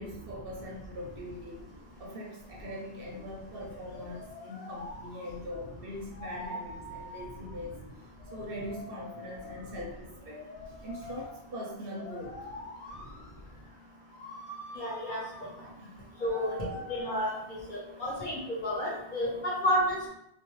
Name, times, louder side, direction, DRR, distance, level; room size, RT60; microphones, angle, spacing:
voice 1, 0.0-1.7 2.0-7.8 8.3-12.4 15.8-16.1, left 1 dB, 65° right, -2 dB, 0.7 m, -42 dB
sound 1, 0.7-18.7, left 1 dB, 85° left, 0.9 m, -47 dB
voice 2, 14.7-15.2 16.2-16.5 16.9-17.3 17.7-20.1, equal, 50° left, -6 dB, 0.9 m, -30 dB
2.3 x 2.2 x 2.9 m, 0.81 s
omnidirectional pair, 1.2 m